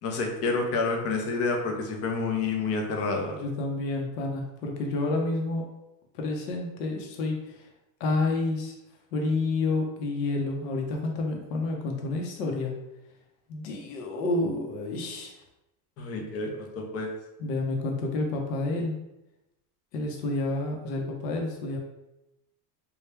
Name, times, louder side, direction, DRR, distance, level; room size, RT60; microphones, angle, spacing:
voice 1, 0.0-3.3 16.0-17.1, left 3 dB, 30° left, 2 dB, 0.5 m, -29 dB
voice 2, 3.3-5.6 6.1-7.6 8.0-8.7 9.1-12.8 13.5-15.4 17.4-19.0 19.9-21.8, left 2 dB, 70° left, 1 dB, 0.9 m, -29 dB
3.2 x 2.4 x 3.3 m, 0.93 s
supercardioid pair, 125°, 49 cm